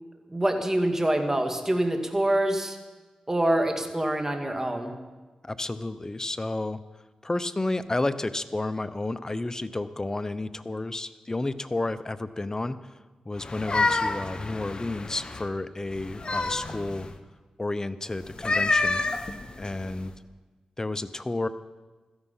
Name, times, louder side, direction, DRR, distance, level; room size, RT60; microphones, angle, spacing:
voice 1, 0.3-2.8 3.3-4.9, right 1 dB, 20° right, 4 dB, 2.3 m, -25 dB
voice 2, 5.4-6.8 7.2-12.9 13.2-17.1 17.6-19.0 19.6-20.1 20.8-21.5, left 2 dB, 25° left, 13 dB, 0.8 m, -31 dB
sound 1, 13.4-15.5 15.9-17.1 18.3-20.1, left 3 dB, 45° left, 1.1 m, -28 dB
16.0 x 13.5 x 5.7 m, 1.3 s
cardioid pair, 55°, 2 cm